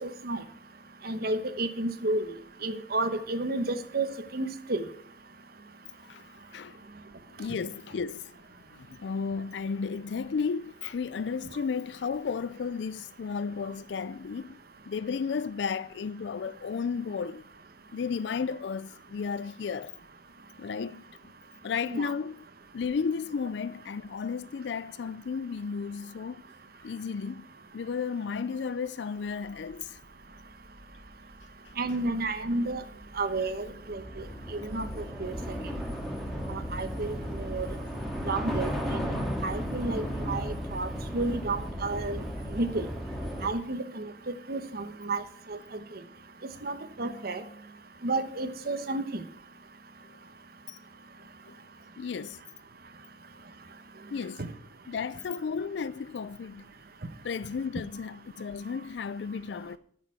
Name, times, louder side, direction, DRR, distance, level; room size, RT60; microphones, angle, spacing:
voice 1, 0.0-0.4 1.0-2.3 2.6-4.8 21.9-22.1 31.8-32.8 33.2-34.2 34.6-35.3 36.5-37.7 38.3-39.1 39.4-42.2 42.5-42.9 43.4-45.2 45.5-45.6 46.6-47.4 48.0-49.2, right 2 dB, 60° right, 1.1 m, -31 dB
voice 2, 7.4-8.4 8.7-14.6 14.9-17.4 17.9-19.9 20.6-21.1 21.6-22.4 22.7-26.4 26.8-27.5 27.7-30.0 50.7-50.8 51.5-51.6 52.0-52.4 54.1-54.4 54.9-56.6 57.2-59.8, left 5 dB, 75° left, 0.4 m, -33 dB
Train / Subway metro underground, 30.1-30.2 30.5-43.5, equal, ahead, 2.0 m, -35 dB
13.0 x 6.7 x 4.8 m
head